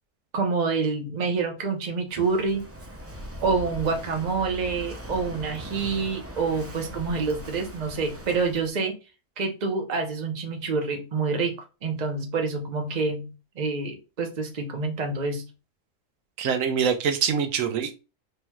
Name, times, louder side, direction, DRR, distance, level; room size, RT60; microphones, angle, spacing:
voice 1, 0.3-2.6 3.4-8.9 9.4-11.5 11.8-15.5, right 4 dB, 40° right, 0.8 m, -27 dB
Walk footsteps / Wind / Waves surf, 2.1-8.7, equal, 20° right, 0.4 m, -40 dB
voice 2, 16.4-17.9, right 7 dB, 85° right, 1.1 m, -24 dB
4.3 x 3.2 x 2.3 m
omnidirectional pair, 1.3 m